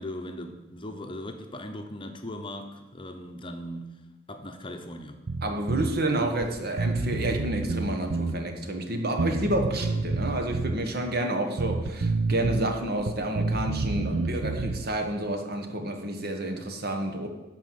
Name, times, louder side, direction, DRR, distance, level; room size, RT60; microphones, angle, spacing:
voice 1, 0.0-3.9 4.3-5.2, left 1 dB, 25° left, 5 dB, 0.8 m, -38 dB
Bass guitar, 5.3-5.9 6.4-6.5 6.8-8.4 9.2-10.8 11.6-12.7 13.0-14.9, right 3 dB, 70° right, 0.8 m, -29 dB
voice 2, 5.4-17.3, right 1 dB, 55° right, 5 dB, 1.3 m, -29 dB
11.5 x 4.7 x 7.6 m, 1.1 s
head